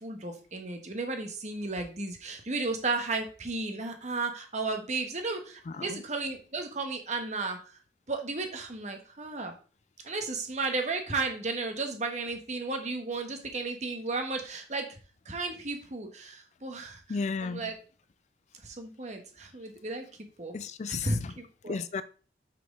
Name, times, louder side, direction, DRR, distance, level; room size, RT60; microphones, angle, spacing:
voice 1, 0.0-7.6 8.1-9.5 10.0-14.9 15.2-17.7 18.6-20.0 20.4-20.5 20.9-21.8, right 3 dB, 40° right, 1.3 m, -34 dB
voice 2, 5.7-6.0 17.1-17.7 20.5-21.3 21.7-22.0, left 4 dB, 40° left, 0.4 m, -34 dB
6.0 x 5.8 x 3.8 m
head